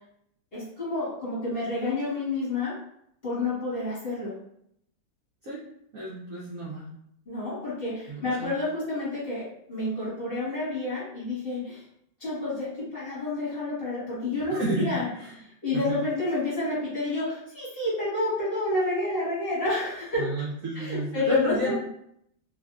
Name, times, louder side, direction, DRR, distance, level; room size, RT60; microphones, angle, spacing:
voice 1, 0.5-2.7 3.2-4.3 7.3-11.8 12.2-15.0 15.6-20.3 20.7-21.8, left 2 dB, 35° left, -10 dB, 1.3 m, -29 dB
voice 2, 5.9-6.9 8.1-8.6 14.5-14.9 15.1-15.4 15.7-16.0 20.2-21.8, right 1 dB, 80° right, -5 dB, 0.7 m, -31 dB
3.5 x 2.6 x 2.4 m, 0.73 s
omnidirectional pair, 2.3 m